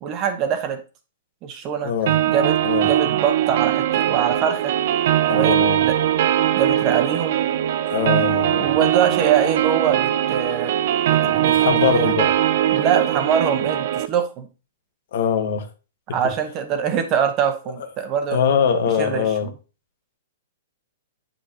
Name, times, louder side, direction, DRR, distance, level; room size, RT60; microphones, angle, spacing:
voice 1, 0.0-0.8 1.4-1.9 2.3-2.6 2.8-4.7 5.3-5.9 6.5-7.4 8.6-10.8 11.1-11.5 11.8-12.1 12.7-14.5 16.1-18.4 19.0-19.5, right 8 dB, 30° right, 1.2 m, -23 dB
voice 2, 1.8-2.2 2.6-2.9 5.3-5.8 7.9-8.8 11.2-12.3 15.1-15.7 16.2-16.3 18.3-19.5, left 7 dB, 65° left, 1.5 m, -22 dB
sound 1, 2.1-14.1, right 11 dB, 60° right, 0.6 m, -20 dB
8.9 x 5.5 x 2.9 m
hypercardioid pair, 150°, 0 cm